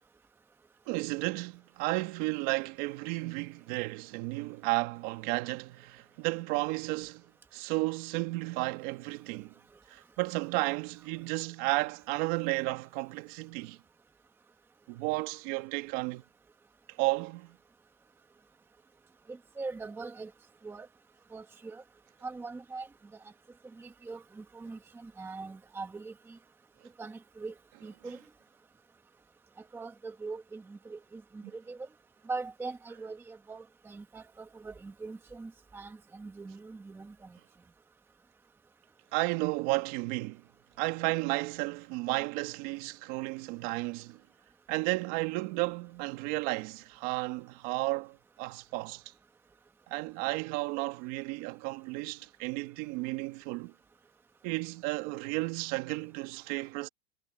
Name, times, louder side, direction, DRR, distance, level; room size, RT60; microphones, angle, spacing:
voice 1, 0.9-7.2 7.5-9.5 9.9-13.8 14.9-16.2 17.0-17.6 39.1-40.4 40.8-44.2 44.7-49.0 49.9-53.7 54.4-56.9, right 22 dB, 45° right, 2.0 m, -33 dB
voice 2, 19.3-20.3 20.6-20.9 21.3-21.8 22.2-22.9 23.8-26.4 27.0-27.5 27.8-28.2 29.7-31.9 32.3-37.3, right 3 dB, 5° right, 1.2 m, -42 dB
supercardioid pair, 165°, 35 cm